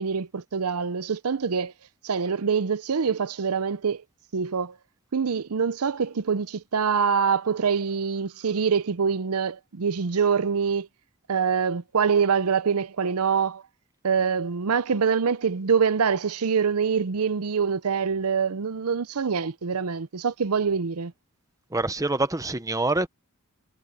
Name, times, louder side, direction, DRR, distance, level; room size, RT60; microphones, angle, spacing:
voice 1, 0.0-1.7 2.0-4.0 4.3-4.7 5.1-10.9 11.3-13.6 14.0-21.1, right 6 dB, 85° right, 0.7 m, -25 dB
voice 2, 21.7-23.1, right 2 dB, 15° right, 0.9 m, -25 dB
head